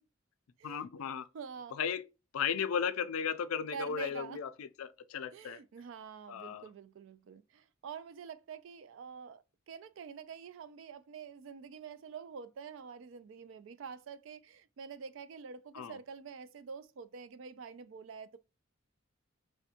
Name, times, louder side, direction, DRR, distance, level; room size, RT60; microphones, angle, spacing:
voice 1, 0.6-1.3 1.7-2.0 2.3-5.6 6.3-6.6 15.7-16.0, left 7 dB, 85° left, 0.4 m, -35 dB
voice 2, 1.3-1.8 3.7-4.4 5.3-18.4, right 6 dB, 65° right, 0.3 m, -47 dB
2.5 x 2.1 x 2.7 m
head